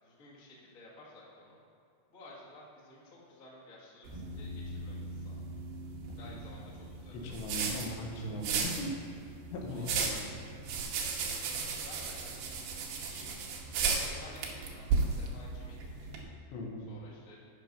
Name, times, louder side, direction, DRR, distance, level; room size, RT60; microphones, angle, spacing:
voice 1, 0.0-1.6 2.1-5.5 6.2-7.7 8.4-8.5 8.8-8.9 9.7-12.7 13.0-13.3 14.0-16.2 16.9-17.4, left 2 dB, 60° left, -7 dB, 0.8 m, -54 dB
sound 1, 4.1-16.6, equal, 70° right, 1.0 m, -49 dB
sound 2, 4.1-16.2, right 5 dB, 90° right, 3.3 m, -36 dB
voice 2, 7.1-8.9 9.5-10.5 16.5-16.9, left 1 dB, 85° left, 0 dB, 3.4 m, -39 dB
9.1 x 5.9 x 5.3 m, 2.4 s
omnidirectional pair, 4.9 m